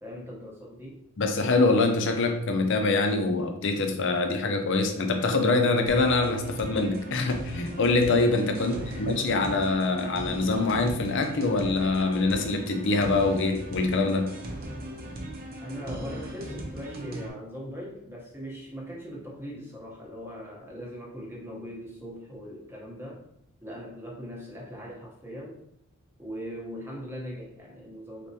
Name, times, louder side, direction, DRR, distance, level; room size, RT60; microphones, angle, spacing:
voice 1, 0.0-1.0 8.6-9.4 15.6-23.2 23.6-25.6 26.2-28.3, equal, 10° right, -3 dB, 0.8 m, -40 dB
voice 2, 1.2-14.3, left 3 dB, 55° left, 5 dB, 0.5 m, -24 dB
sound 1, 5.9-17.3, right 1 dB, 40° right, 0.6 m, -38 dB
4.1 x 3.4 x 2.8 m, 0.77 s
head